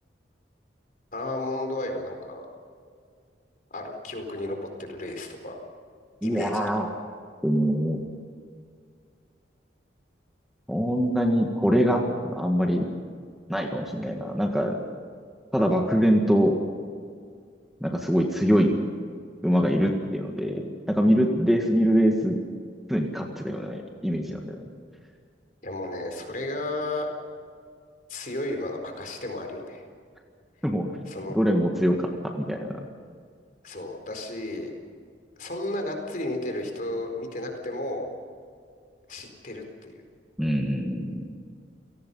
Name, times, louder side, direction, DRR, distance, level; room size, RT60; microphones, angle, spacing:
voice 1, 1.1-2.5 3.7-5.6 6.2-6.6 25.6-27.1 28.1-29.8 31.1-31.4 33.6-34.7 35.4-38.0 39.1-39.9, left 1 dB, 45° left, 4 dB, 4.4 m, -33 dB
voice 2, 6.2-6.9 7.4-8.0 10.7-12.8 13.5-14.8 15.5-16.6 17.8-18.8 19.4-22.4 22.9-24.6 30.6-30.9 31.3-32.7 40.4-41.3, equal, ahead, 1 dB, 1.7 m, -23 dB
29.5 x 18.5 x 5.6 m, 2.2 s
head